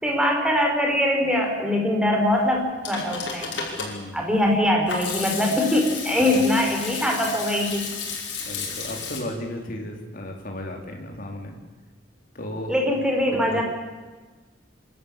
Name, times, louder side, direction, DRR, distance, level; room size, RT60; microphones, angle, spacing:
voice 1, 0.0-2.6 2.9-3.7 4.1-7.9 12.7-13.6, left 1 dB, 5° right, 0 dB, 4.9 m, -22 dB
Hands / Sink (filling or washing), 2.5-9.2, left 5 dB, 70° left, 5.3 m, -33 dB
voice 2, 3.8-4.2 6.4-6.5 8.5-11.6 12.3-12.9 13.1-13.6, left 1 dB, 50° left, 2 dB, 3.5 m, -35 dB
26.5 x 13.0 x 8.8 m, 1.3 s
head